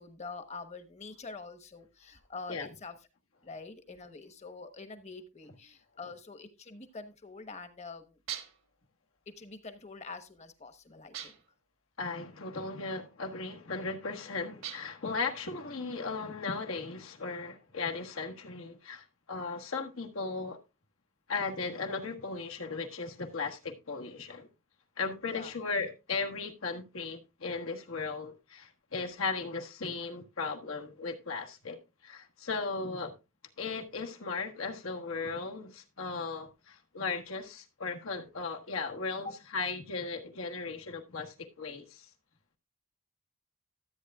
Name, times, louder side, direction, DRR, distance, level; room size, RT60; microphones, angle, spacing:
voice 1, 0.0-2.9 3.4-8.2 9.4-11.3 25.3-25.5, left 4 dB, 35° left, 1.1 m, -46 dB
sound 1, 8.3-8.7 11.1-11.6 14.6-15.1, right 10 dB, 75° right, 1.4 m, -41 dB
voice 2, 12.0-20.6 21.3-24.5 25.0-31.8 32.0-33.1 33.6-42.1, left 4 dB, 80° left, 1.4 m, -37 dB
13.5 x 8.7 x 2.3 m
head